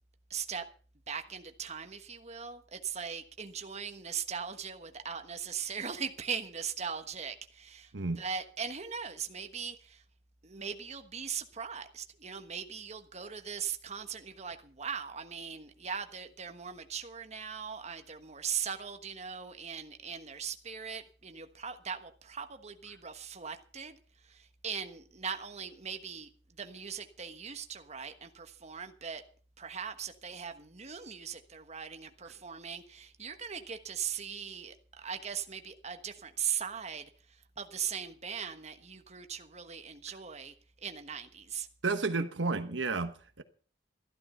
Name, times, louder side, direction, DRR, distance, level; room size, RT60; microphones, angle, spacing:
voice 1, 0.3-0.6 1.1-10.0 10.4-24.0 24.2-29.2 29.6-41.7, right 7 dB, 35° right, 1.3 m, -40 dB
voice 2, 7.9-8.2 41.8-43.4, right 3 dB, 75° right, 1.2 m, -32 dB
14.0 x 12.5 x 5.6 m
head